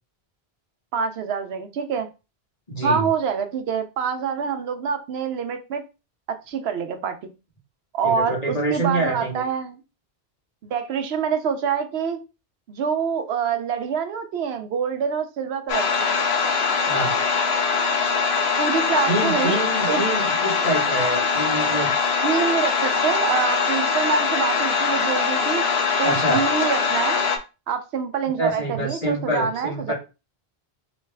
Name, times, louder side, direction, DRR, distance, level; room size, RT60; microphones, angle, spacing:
voice 1, 0.9-2.1 2.8-5.8 6.3-7.3 7.9-9.8 10.6-12.2 12.7-16.1 18.6-19.6 19.9-20.1 22.2-25.7 26.0-27.2 27.7-29.9, right 6 dB, 80° right, 8 dB, 0.8 m, -26 dB
voice 2, 2.7-3.1 8.0-9.4 16.9-17.1 19.1-21.9 26.0-26.4 28.4-29.9, right 1 dB, 40° left, -4 dB, 1.7 m, -26 dB
sound 1, 15.7-27.4, left 5 dB, 85° left, 0.9 m, -22 dB
3.2 x 3.0 x 3.3 m, 0.29 s
omnidirectional pair, 1.1 m